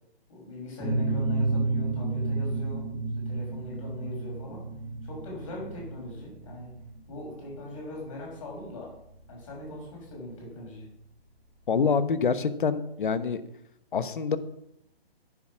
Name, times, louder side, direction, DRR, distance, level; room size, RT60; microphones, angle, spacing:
voice 1, 0.3-2.8 3.2-4.6 5.0-6.7 7.1-8.9 9.3-10.9, left 2 dB, 30° left, -2 dB, 6.0 m, -41 dB
sound 1, 0.8-10.2, right 3 dB, ahead, 0.9 m, -31 dB
voice 2, 11.7-13.4 13.9-14.4, left 5 dB, 55° left, 13 dB, 1.1 m, -26 dB
11.0 x 9.5 x 6.1 m, 0.77 s
hypercardioid pair, 170°, 31 cm